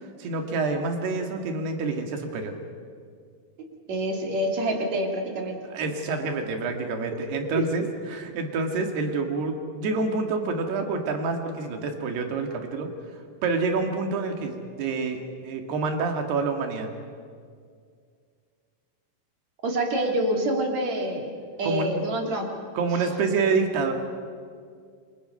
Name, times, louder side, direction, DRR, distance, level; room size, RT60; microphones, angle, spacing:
voice 1, 0.2-2.5 5.7-12.9 13.4-16.9 21.6-21.9 22.8-23.9, right 4 dB, 90° right, 4 dB, 4.0 m, -27 dB
voice 2, 3.6-5.6 7.5-7.7 19.6-21.3 21.6-22.5, right 1 dB, 50° right, 2 dB, 3.6 m, -27 dB
28.0 x 24.0 x 5.6 m, 2.1 s
omnidirectional pair, 4.5 m